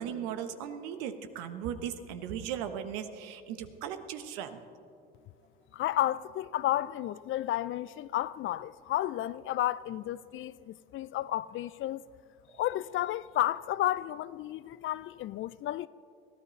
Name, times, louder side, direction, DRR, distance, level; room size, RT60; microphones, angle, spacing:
voice 1, 0.0-4.6, right 9 dB, 70° right, 1.1 m, -37 dB
voice 2, 5.7-12.0 12.6-15.9, left 14 dB, 45° left, 0.4 m, -32 dB
22.5 x 14.5 x 3.2 m
hypercardioid pair, 70°, 30 cm